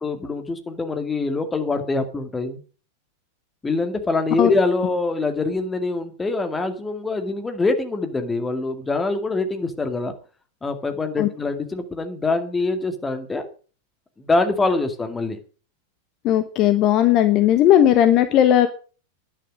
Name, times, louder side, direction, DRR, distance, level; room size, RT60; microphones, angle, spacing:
voice 1, 0.0-2.6 3.6-10.1 10.6-13.5 14.2-15.4, left 3 dB, 15° left, 8 dB, 2.2 m, -24 dB
voice 2, 16.2-18.7, left 11 dB, 35° left, 10 dB, 1.2 m, -16 dB
11.0 x 9.9 x 6.2 m, 0.38 s
figure-of-eight pair, 90°, 0 cm